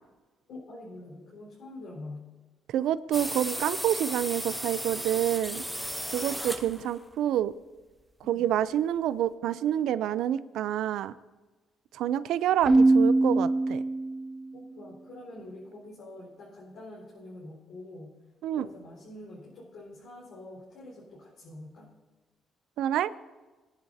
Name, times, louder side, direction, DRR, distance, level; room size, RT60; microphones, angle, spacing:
voice 1, 0.5-2.3 6.6-7.0 8.2-8.5 14.5-18.2 18.5-21.9, left 1 dB, 75° left, -6 dB, 4.6 m, -46 dB
voice 2, 2.7-5.6 6.1-7.5 8.3-11.1 11.9-13.8 18.4-18.7 22.8-23.1, right 11 dB, 85° right, 16 dB, 0.4 m, -28 dB
sound 1, 3.1-7.1, equal, ahead, 0.8 m, -35 dB
Keyboard (musical), 12.6-14.5, right 2 dB, 20° right, 0.4 m, -22 dB
20.0 x 10.5 x 2.8 m, 1.2 s
cardioid pair, 90°, 0 cm